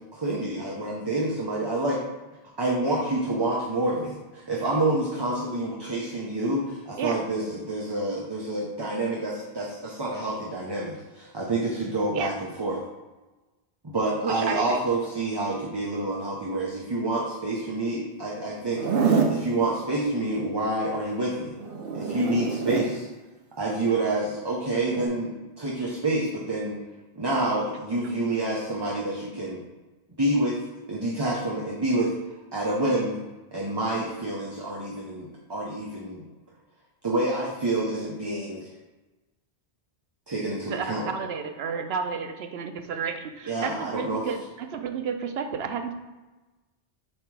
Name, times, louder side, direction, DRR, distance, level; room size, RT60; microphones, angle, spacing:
voice 1, 0.1-2.0 2.6-12.8 13.8-21.5 21.9-23.1 23.6-26.8 27.2-29.6 30.2-30.6 30.9-32.1 32.5-33.2 33.5-36.2 37.0-38.7 40.3-41.1 43.5-44.3, right 2 dB, 25° right, -4 dB, 0.8 m, -28 dB
voice 2, 14.2-14.8 40.7-45.9, right 6 dB, 85° right, 6 dB, 0.9 m, -31 dB
Zipper (clothing), 18.7-19.4 21.6-22.9 24.8-25.1, right 5 dB, 65° right, 0.9 m, -26 dB
7.3 x 2.9 x 4.8 m, 1.2 s
omnidirectional pair, 1.0 m